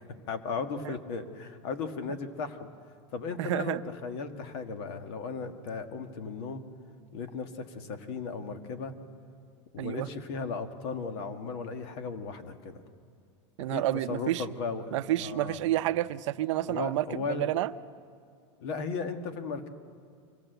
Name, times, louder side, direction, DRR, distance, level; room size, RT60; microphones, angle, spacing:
voice 1, 0.3-2.7 3.1-6.6 7.1-8.9 9.7-12.8 13.6-15.6 16.7-17.5 18.6-19.7, left 4 dB, 55° left, 8 dB, 1.6 m, -36 dB
voice 2, 3.4-3.8 9.8-10.1 13.6-14.4 14.9-17.7, right 14 dB, 70° right, 13 dB, 0.6 m, -30 dB
25.0 x 17.5 x 7.9 m, 2.3 s
supercardioid pair, 160°, 16 cm